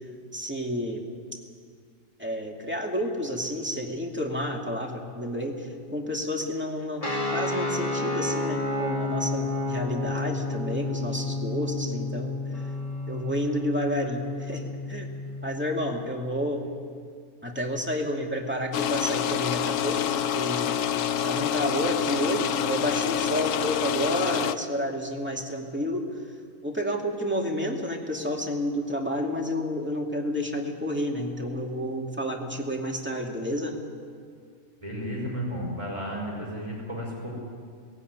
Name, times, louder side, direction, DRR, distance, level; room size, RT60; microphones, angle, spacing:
voice 1, 0.3-1.0 1.3-1.4 2.2-12.3 13.1-15.1 15.4-16.7 17.4-20.7 21.2-26.0 26.6-33.8, equal, 10° right, 0 dB, 2.4 m, -30 dB
sound 1, 7.0-16.0, left 2 dB, 30° left, 2.4 m, -31 dB
sound 2, 18.7-24.5, left 9 dB, 85° left, 1.1 m, -27 dB
voice 2, 34.8-37.4, equal, 25° right, -3 dB, 4.9 m, -33 dB
17.5 x 17.0 x 9.5 m, 2.1 s
omnidirectional pair, 1.3 m